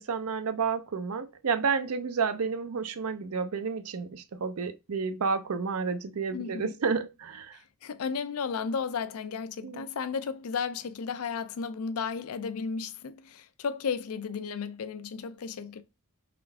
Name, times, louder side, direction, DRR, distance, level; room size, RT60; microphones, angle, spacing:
voice 1, 0.0-7.6 9.6-9.9, right 5 dB, 80° right, 0.5 m, -30 dB
voice 2, 6.3-6.7 7.8-15.8, left 6 dB, 80° left, 0.5 m, -34 dB
3.8 x 3.4 x 3.3 m
head